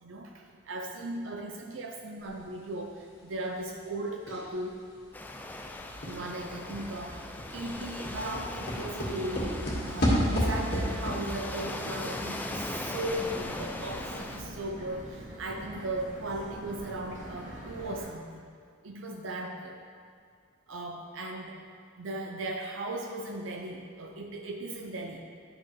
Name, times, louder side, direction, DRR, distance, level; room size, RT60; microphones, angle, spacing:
voice 1, 0.0-4.8 6.0-9.5 9.9-18.4 18.8-19.8 20.7-21.6 22.0-25.2, right 1 dB, 75° right, 2 dB, 0.6 m, -37 dB
sound 1, 4.3-4.6 5.0-5.1 5.3-13.1 13.3-13.4, equal, 50° left, 1.9 m, -32 dB
Waves surf, 5.1-14.4, left 2 dB, 10° left, 0.3 m, -39 dB
sound 2, 13.0-18.0, equal, 40° right, 1.8 m, -44 dB
10.5 x 6.0 x 3.3 m, 2.1 s
head